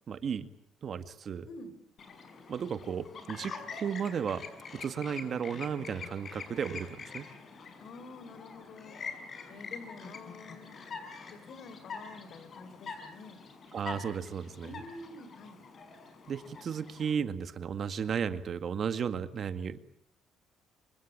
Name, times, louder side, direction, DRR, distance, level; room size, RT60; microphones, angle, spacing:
voice 1, 0.1-0.5 0.8-1.5 2.5-4.4 4.7-7.3 13.7-14.7 16.3-19.8, right 7 dB, 50° right, 10 dB, 1.9 m, -34 dB
Chirp tweet, 2.0-17.1, left 5 dB, 45° left, 6.1 m, -45 dB
voice 2, 7.8-9.0 9.5-10.8 11.3-13.4 14.6-15.6, left 3 dB, 60° left, 12 dB, 4.7 m, -48 dB
26.5 x 24.0 x 8.8 m, 0.69 s
cardioid pair, 100°, 0 cm